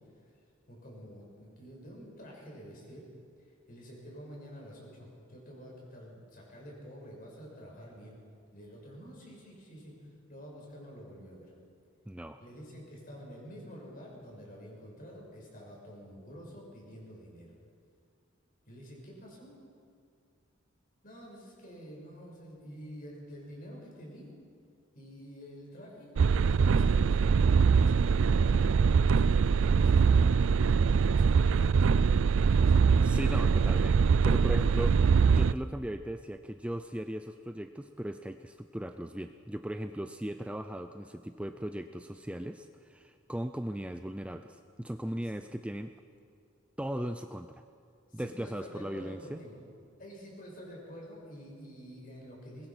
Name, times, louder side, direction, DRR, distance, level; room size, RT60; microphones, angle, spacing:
voice 1, 0.7-3.1 3.4-8.2 8.5-11.5 12.4-17.5 18.7-19.6 21.0-24.3 24.9-26.1 26.4-33.0 34.2-34.7 47.9-49.6 50.0-52.7, equal, 45° left, -2 dB, 6.6 m, -48 dB
voice 2, 12.1-12.4 33.0-35.0 35.3-45.9 46.8-47.6 48.1-49.4, equal, 5° right, 8 dB, 0.5 m, -38 dB
sound 1, 26.2-35.5, right 5 dB, 75° right, 0.4 m, -23 dB
22.0 x 20.5 x 6.1 m, 2.4 s
head